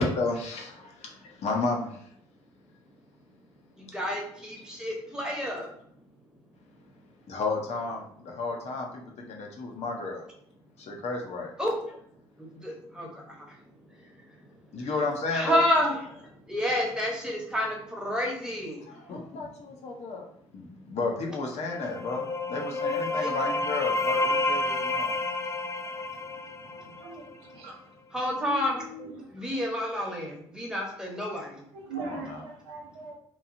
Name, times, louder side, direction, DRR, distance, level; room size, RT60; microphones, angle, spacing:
voice 1, 0.0-2.0 7.3-10.2 10.8-11.5 14.7-15.6 18.9-25.2 26.7-27.0 32.0-32.4, left 3 dB, 55° left, 1 dB, 0.7 m, -32 dB
voice 2, 3.8-5.7 11.6-11.8 12.4-13.6 14.0-14.1 14.8-14.9 15.3-18.8 23.2-23.3 28.1-28.8 29.3-31.6, left 1 dB, 5° right, -1 dB, 1.0 m, -30 dB
sound 1, 21.7-27.3, left 2 dB, 20° left, 0.3 m, -30 dB
voice 3, 28.4-29.1 31.7-33.1, right 4 dB, 85° right, 0 dB, 0.6 m, -40 dB
2.9 x 2.3 x 2.6 m, 0.68 s
hypercardioid pair, 50°, 14 cm